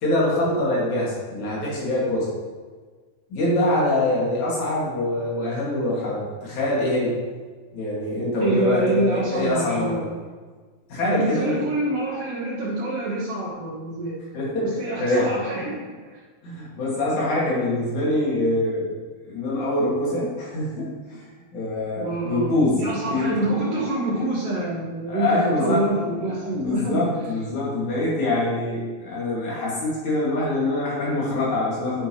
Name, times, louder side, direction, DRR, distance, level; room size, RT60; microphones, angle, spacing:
voice 1, 0.0-2.3 3.3-7.2 7.7-10.1 10.9-11.6 14.3-14.7 15.0-15.3 16.4-18.9 19.3-21.2 21.5-22.8 23.1-23.4 25.1-25.9 26.6-32.1, left 1 dB, 55° left, -6 dB, 3.5 m, -24 dB
voice 2, 8.4-10.0 11.0-14.2 14.6-15.8 22.0-27.0, right 1 dB, 65° right, -10 dB, 3.3 m, -26 dB
9.7 x 6.6 x 3.1 m, 1.5 s
omnidirectional pair, 4.3 m